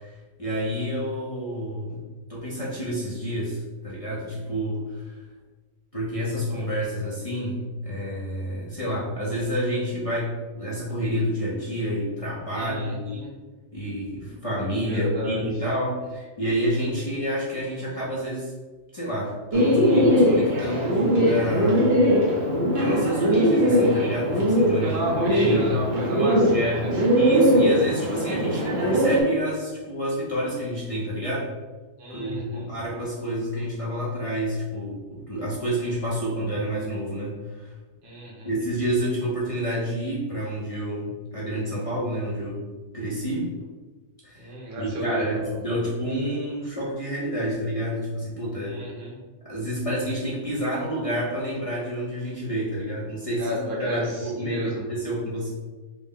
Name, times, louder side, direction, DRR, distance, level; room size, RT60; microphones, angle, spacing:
voice 1, 0.0-2.0 2.3-5.2 5.9-13.2 13.7-18.5 18.9-22.5 22.7-25.7 26.0-31.5 32.1-37.7 38.4-42.7 42.9-43.5 44.2-44.5 44.8-48.8 49.4-55.5, equal, 35° left, -6 dB, 0.6 m, -29 dB
voice 2, 12.5-13.3 14.8-15.7 24.8-27.0 32.0-32.8 38.0-38.5 44.3-45.9 48.6-49.2 53.4-54.9, right 1 dB, 85° right, -4 dB, 1.3 m, -33 dB
Bird, 19.5-29.2, equal, 60° right, 1.0 m, -21 dB
3.8 x 2.1 x 3.6 m, 1.3 s
omnidirectional pair, 1.3 m